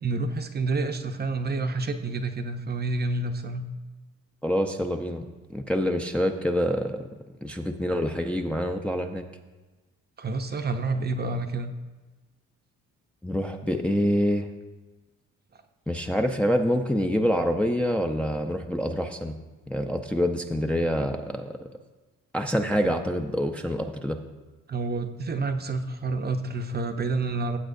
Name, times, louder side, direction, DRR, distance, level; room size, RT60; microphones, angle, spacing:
voice 1, 0.0-3.7 10.2-11.7 24.7-27.6, right 3 dB, 35° right, 6 dB, 0.8 m, -29 dB
voice 2, 4.4-5.2 5.5-7.0 7.4-9.2 13.2-14.5 15.9-19.4 19.7-21.6 22.3-24.2, equal, 5° left, 3 dB, 0.6 m, -26 dB
15.5 x 7.8 x 2.6 m, 1.2 s
cardioid pair, 90°, 30 cm